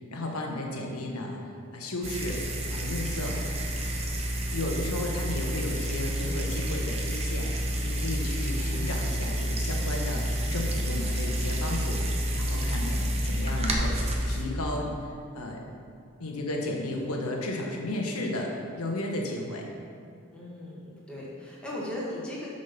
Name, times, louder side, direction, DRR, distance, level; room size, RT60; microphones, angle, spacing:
voice 1, 0.1-2.4 2.7-3.4 4.5-15.6 16.2-19.7, left 1 dB, 90° left, 0 dB, 1.2 m, -33 dB
sound 1, 2.0-14.4, equal, 30° right, 0.8 m, -29 dB
voice 2, 20.3-22.5, left 1 dB, 5° left, -7 dB, 1.5 m, -37 dB
6.4 x 5.6 x 5.7 m, 2.4 s
head